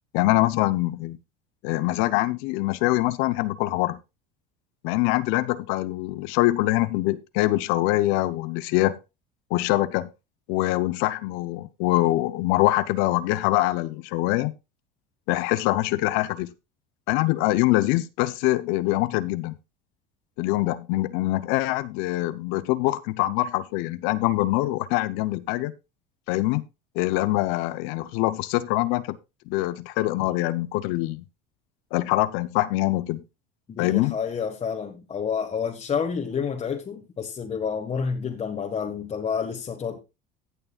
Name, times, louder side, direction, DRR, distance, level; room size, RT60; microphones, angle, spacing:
voice 1, 0.1-1.2 1.6-4.0 4.8-9.0 9.5-10.1 10.5-14.5 15.3-16.5 17.1-19.5 20.4-25.7 26.3-26.6 26.9-29.2 29.5-31.2 31.9-33.2 33.8-34.1, left 18 dB, 75° left, 0.8 m, -24 dB
voice 2, 33.7-40.0, left 6 dB, 30° left, 1.6 m, -29 dB
17.5 x 6.7 x 2.4 m
supercardioid pair, 105°, 21 cm